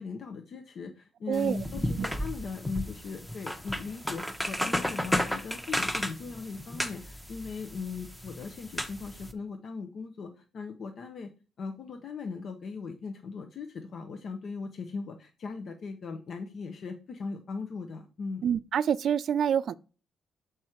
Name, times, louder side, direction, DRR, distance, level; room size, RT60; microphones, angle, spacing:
voice 1, 0.0-11.3 11.6-18.5, left 4 dB, 55° left, 0.8 m, -39 dB
sound 1, 1.3-9.3, equal, 5° left, 0.9 m, -34 dB
voice 2, 18.4-19.7, right 8 dB, 60° right, 0.4 m, -27 dB
6.3 x 4.8 x 4.4 m
cardioid pair, 90°, 0 cm